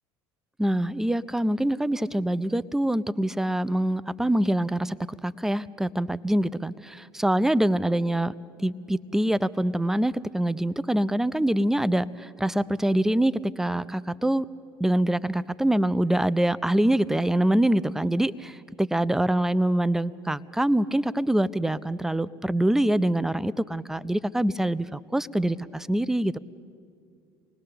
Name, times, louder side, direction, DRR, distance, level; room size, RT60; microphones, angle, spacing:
voice 1, 0.6-5.0 5.2-8.3 8.6-14.5 14.8-26.4, right 1 dB, 5° right, 16 dB, 0.6 m, -25 dB
26.5 x 20.0 x 6.7 m, 2.3 s
hypercardioid pair, 70°, 12 cm